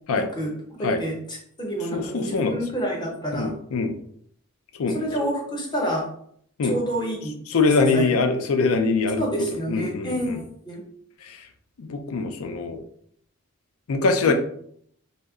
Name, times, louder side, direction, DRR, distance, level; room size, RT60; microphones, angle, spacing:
voice 1, 0.1-3.5 4.9-6.1 6.7-7.6 7.9-8.1 9.2-10.8 14.2-14.3, right 1 dB, 20° left, -2 dB, 0.7 m, -29 dB
voice 2, 1.9-2.6 3.3-3.9 4.7-5.0 6.6-6.8 7.5-9.3 9.7-10.4 11.2-11.4 11.8-12.8 13.9-14.3, left 4 dB, 70° left, 6 dB, 0.4 m, -23 dB
2.7 x 2.1 x 3.6 m, 0.65 s
head